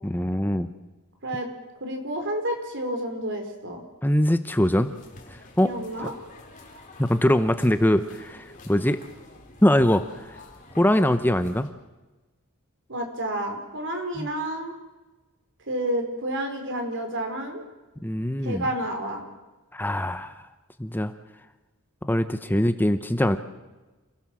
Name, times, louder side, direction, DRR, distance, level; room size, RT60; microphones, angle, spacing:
voice 1, 0.0-0.7 4.0-4.9 5.3-5.7 6.0-6.1 7.0-9.0 9.6-10.4 10.8-11.7 14.2-14.3 18.0-18.7 19.7-20.5 20.8-21.1 22.0-23.4, left 1 dB, 10° left, 10 dB, 0.8 m, -22 dB
voice 2, 1.8-3.8 5.6-6.1 12.9-14.7 15.7-17.6 18.4-19.2, right 1 dB, 60° right, 5 dB, 4.3 m, -30 dB
sound 1, 4.7-11.7, left 2 dB, 35° left, 4.1 m, -48 dB
28.0 x 16.5 x 7.5 m, 1.2 s
head